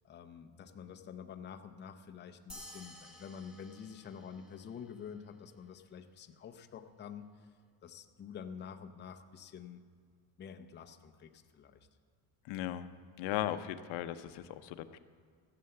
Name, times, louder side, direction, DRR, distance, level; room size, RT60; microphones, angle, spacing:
voice 1, 0.0-7.5 7.8-9.8 10.4-11.8, left 7 dB, 25° left, 6 dB, 0.6 m, -48 dB
sound 1, 2.5-5.2, left 1 dB, ahead, 1.2 m, -54 dB
voice 2, 12.5-12.9 13.2-15.0, left 12 dB, 90° left, 9 dB, 0.8 m, -37 dB
15.0 x 6.8 x 7.8 m, 2.1 s
cardioid pair, 160°, 46 cm